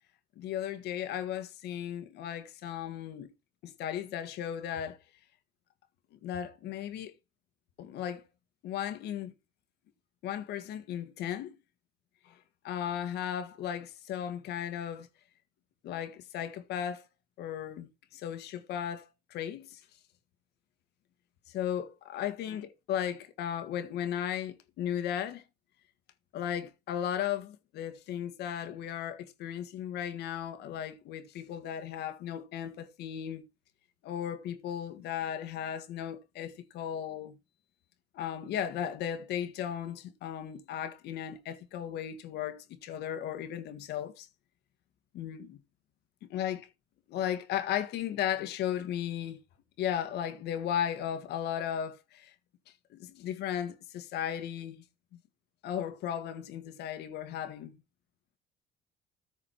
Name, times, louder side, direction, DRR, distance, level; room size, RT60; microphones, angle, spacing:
voice 1, 0.4-3.3 3.6-5.0 6.2-7.1 7.8-8.2 8.6-9.3 10.2-11.6 12.3-12.4 12.6-15.1 15.8-17.1 17.4-19.8 21.5-25.4 26.3-33.4 34.0-37.4 38.1-44.3 45.1-45.6 46.3-46.7 47.1-49.4 49.8-52.3 52.9-54.8 55.6-57.8, left 10 dB, 75° left, 1.7 m, -36 dB
14.0 x 5.0 x 4.3 m
cardioid pair, 110°, 17 cm